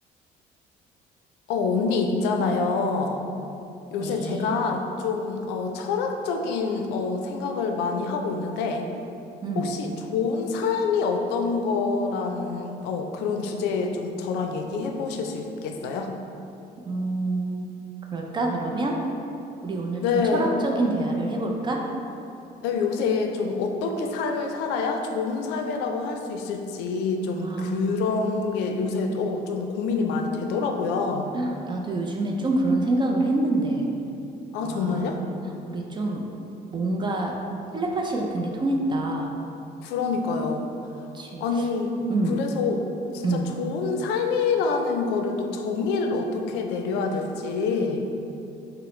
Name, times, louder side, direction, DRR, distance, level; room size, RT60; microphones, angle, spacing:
voice 1, 1.5-3.2 3.9-8.9 9.6-16.1 20.0-20.5 22.6-31.3 34.5-35.2 39.8-40.6 41.0-41.1 41.4-42.0 42.3-42.8 43.1-48.0, left 4 dB, 90° left, 4 dB, 0.4 m, -26 dB
voice 2, 4.0-4.5 9.4-9.7 16.9-17.7 18.1-19.0 19.6-21.8 27.4-28.0 31.3-33.9 34.6-35.1 35.7-36.2 36.7-37.4 37.7-39.3 41.1-41.4 42.1-42.4 43.2-43.5, right 2 dB, 25° right, 1 dB, 0.4 m, -26 dB
5.6 x 2.0 x 3.0 m, 2.8 s
cardioid pair, 110°, 17 cm